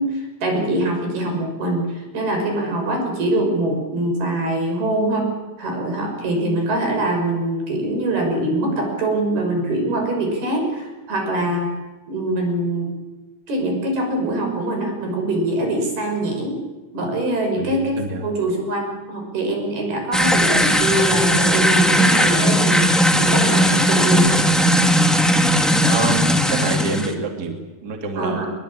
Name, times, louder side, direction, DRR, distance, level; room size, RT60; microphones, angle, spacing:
voice 1, 0.0-5.3 5.6-11.7 12.1-12.9 13.5-16.6 16.9-24.4 28.2-28.5, right 1 dB, 75° right, 3 dB, 7.9 m, -23 dB
voice 2, 17.6-18.3 20.5-20.7 25.8-28.5, right 3 dB, 25° right, 3 dB, 2.9 m, -27 dB
sound 1, 20.1-27.1, equal, ahead, 0.3 m, -17 dB
24.5 x 22.0 x 8.8 m, 1.2 s
omnidirectional pair, 4.5 m